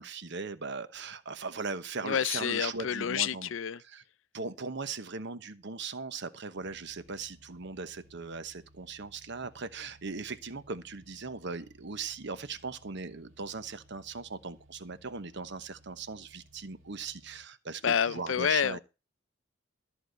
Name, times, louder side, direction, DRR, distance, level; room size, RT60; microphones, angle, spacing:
voice 1, 0.0-3.5 3.8-4.0 4.3-18.8, right 4 dB, 65° right, 1.0 m, -39 dB
voice 2, 2.0-3.8 17.8-18.8, left 8 dB, 70° left, 0.5 m, -29 dB
sound 1, 6.5-17.4, right 1 dB, 90° right, 3.2 m, -61 dB
14.0 x 4.9 x 8.0 m
head